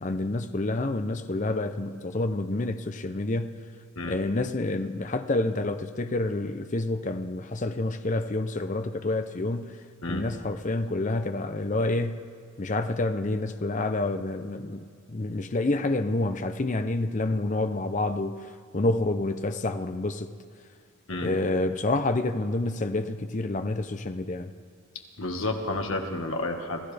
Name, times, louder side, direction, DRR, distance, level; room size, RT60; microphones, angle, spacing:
voice 1, 0.0-3.6 4.0-9.8 10.1-12.2 12.6-14.8 15.1-18.5 18.7-20.3 21.2-24.5, left 2 dB, 35° left, 8 dB, 0.6 m, -28 dB
voice 2, 25.2-26.9, left 2 dB, 65° left, 3 dB, 1.6 m, -31 dB
26.5 x 14.5 x 3.4 m, 2.2 s
head